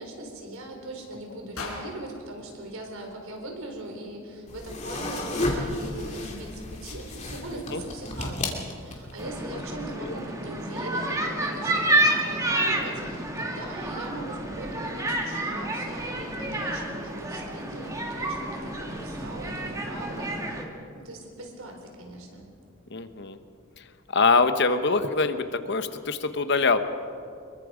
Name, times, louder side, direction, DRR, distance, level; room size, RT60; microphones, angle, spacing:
voice 1, 0.0-20.5 20.9-22.5, right 1 dB, 80° right, 2 dB, 4.1 m, -40 dB
sound 1, 1.5-3.7, left 3 dB, 85° left, 5.4 m, -42 dB
sound 2, 4.5-9.2, left 2 dB, 30° left, 2.7 m, -32 dB
sound 3, 9.2-20.6, right 1 dB, 15° right, 1.8 m, -29 dB
voice 2, 22.9-23.4 24.1-26.8, left 4 dB, 55° left, 9 dB, 1.0 m, -23 dB
25.0 x 22.5 x 5.1 m, 2.5 s
head